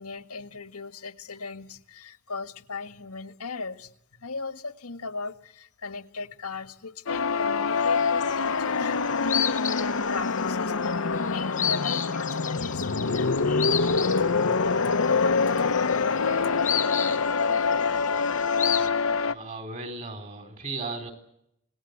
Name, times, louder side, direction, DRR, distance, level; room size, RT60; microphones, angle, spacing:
voice 1, 0.0-3.9 4.2-14.3 14.7-16.5, left 4 dB, 85° left, 9 dB, 1.7 m, -38 dB
sound 1, 7.1-19.3, left 4 dB, 65° left, 0.9 m, -25 dB
sound 2, 7.8-8.7 8.9-18.9, left 9 dB, 35° left, 1.1 m, -33 dB
voice 2, 19.3-21.1, right 3 dB, 35° right, 6 dB, 4.1 m, -36 dB
27.0 x 19.0 x 8.3 m, 0.76 s
head